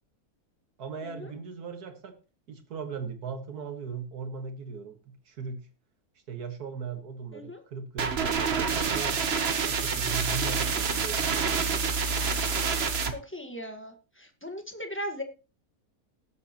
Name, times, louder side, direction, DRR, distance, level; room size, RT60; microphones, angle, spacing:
voice 1, 0.8-2.2 2.5-5.7 6.3-9.2 9.7-12.1, right 6 dB, 85° right, 7 dB, 2.1 m, -38 dB
sound 1, 8.0-13.1, right 5 dB, 45° right, 1.2 m, -27 dB
voice 2, 13.1-15.2, equal, 10° left, 4 dB, 1.4 m, -38 dB
18.5 x 8.0 x 3.0 m, 0.33 s
omnidirectional pair, 1.6 m